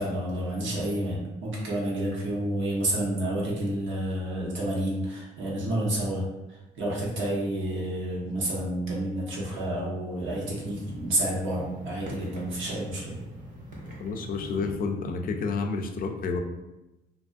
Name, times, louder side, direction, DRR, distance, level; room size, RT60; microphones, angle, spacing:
voice 1, 0.0-6.2 6.5-13.2, right 1 dB, 75° right, -4 dB, 0.9 m, -30 dB
sound 1, 10.1-14.7, right 1 dB, 40° right, 0.7 m, -43 dB
voice 2, 14.0-16.4, left 4 dB, 45° left, 4 dB, 0.4 m, -30 dB
2.5 x 2.3 x 2.5 m, 0.99 s
cardioid pair, 90°, 20 cm